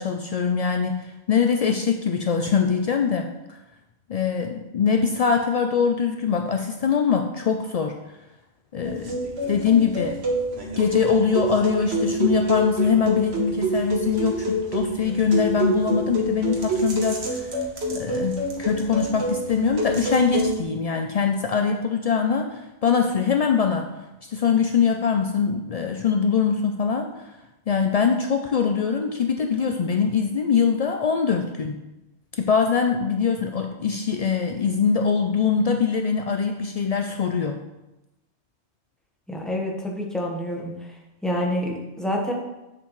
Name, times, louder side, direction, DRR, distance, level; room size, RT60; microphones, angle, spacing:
voice 1, 0.0-3.3 4.1-8.0 8.7-9.2 9.5-10.2 10.8-17.5 17.9-23.9 24.2-27.3 27.7-31.8 32.4-37.6, left 6 dB, 70° left, 4 dB, 0.3 m, -23 dB
sound 1, 8.8-20.6, equal, 60° right, 1.5 m, -27 dB
voice 2, 39.3-40.7 41.2-42.3, equal, ahead, -2 dB, 1.1 m, -27 dB
7.7 x 7.1 x 3.1 m, 0.99 s
omnidirectional pair, 1.2 m